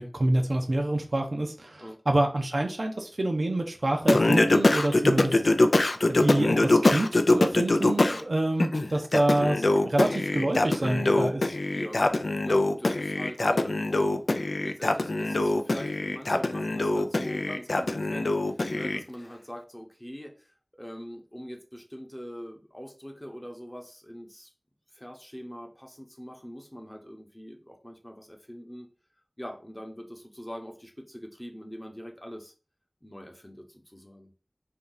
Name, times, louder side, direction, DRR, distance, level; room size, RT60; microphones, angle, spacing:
voice 1, 0.0-5.3 6.1-11.5, right 1 dB, 70° right, 3 dB, 0.6 m, -27 dB
Singing, 4.1-8.2 8.6-19.0, left 2 dB, 80° left, 0.3 m, -24 dB
voice 2, 11.7-14.1 14.3-20.5 20.8-24.5 24.9-28.9 29.4-32.5 33.0-34.3, equal, 20° left, 2 dB, 0.8 m, -42 dB
2.7 x 2.4 x 3.8 m, 0.35 s
wide cardioid pair, 40°, 0 cm